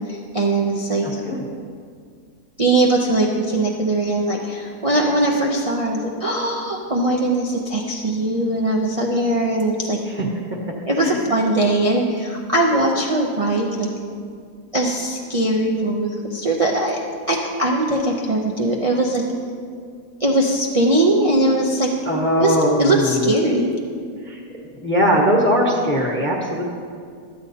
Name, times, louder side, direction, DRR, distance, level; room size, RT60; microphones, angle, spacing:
voice 1, 0.1-1.2 2.6-10.0 10.9-13.9 14.7-17.0 17.3-19.2 20.2-21.9 22.4-23.7, right 1 dB, 65° right, -2 dB, 0.3 m, -20 dB
voice 2, 1.0-1.4 10.1-10.3 11.0-11.2 22.0-23.3 24.2-24.4 24.8-26.6, equal, 10° left, -2 dB, 0.9 m, -20 dB
13.5 x 8.7 x 2.8 m, 2.2 s
omnidirectional pair, 1.7 m